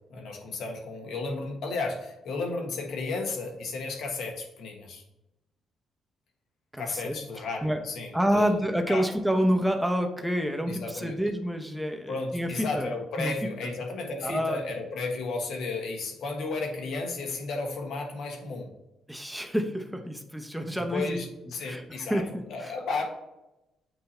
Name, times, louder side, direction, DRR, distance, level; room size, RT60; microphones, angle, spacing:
voice 1, 0.1-5.0 6.8-8.6 8.9-9.0 10.7-11.2 12.1-18.7 20.9-22.2 22.5-23.0, left 3 dB, 70° left, 2 dB, 1.4 m, -33 dB
voice 2, 6.7-7.2 7.6-7.8 8.1-12.9 13.2-13.3 13.6-13.7 14.2-14.6 19.1-21.2 21.6-22.7, equal, ahead, 4 dB, 0.9 m, -28 dB
8.0 x 2.8 x 4.2 m, 0.93 s
cardioid pair, 90°, 0 cm